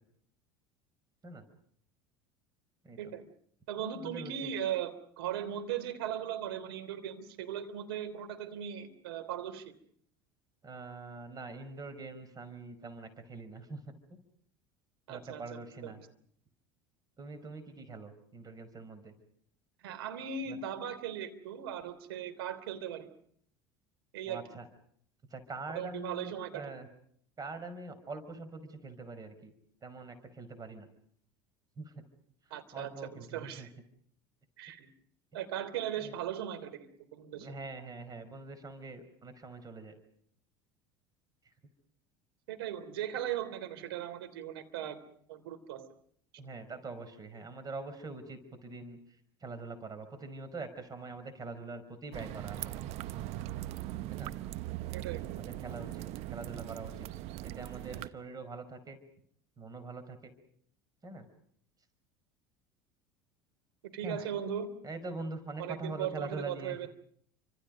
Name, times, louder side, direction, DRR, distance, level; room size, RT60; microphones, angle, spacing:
voice 1, 3.0-3.3 3.7-9.7 15.1-16.0 19.8-23.1 24.1-24.4 25.7-26.7 32.5-33.7 34.6-34.9 35.3-37.5 42.5-45.0 45.3-45.9 54.9-55.4 63.9-64.7 65.6-66.9, right 9 dB, 75° right, 10 dB, 3.3 m, -38 dB
voice 2, 3.8-4.5 10.6-13.8 15.1-16.0 17.2-19.1 20.5-20.6 24.3-24.7 25.3-26.9 27.4-29.5 29.8-30.9 31.8-31.9 32.7-33.7 36.0-36.1 37.4-39.9 46.4-49.0 49.4-52.8 54.1-54.3 55.4-56.0 56.3-56.9 57.4-59.0 59.6-60.3 61.0-61.3 64.0-64.3 64.8-66.9, right 3 dB, 30° right, 11 dB, 5.2 m, -43 dB
sound 1, 52.1-58.1, right 14 dB, 55° right, 1.0 m, -40 dB
29.5 x 26.0 x 5.3 m, 0.64 s
hypercardioid pair, 75°, 13 cm